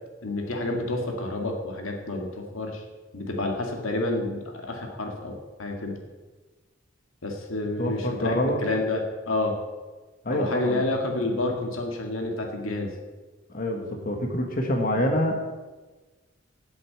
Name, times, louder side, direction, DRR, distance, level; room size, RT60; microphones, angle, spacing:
voice 1, 0.2-2.8 3.1-6.0 7.2-9.6 10.3-12.9, left 2 dB, 90° left, 2 dB, 2.0 m, -29 dB
voice 2, 7.8-8.6 10.2-10.8 13.5-15.4, left 1 dB, 45° left, 2 dB, 1.4 m, -26 dB
8.4 x 7.9 x 8.6 m, 1.2 s
head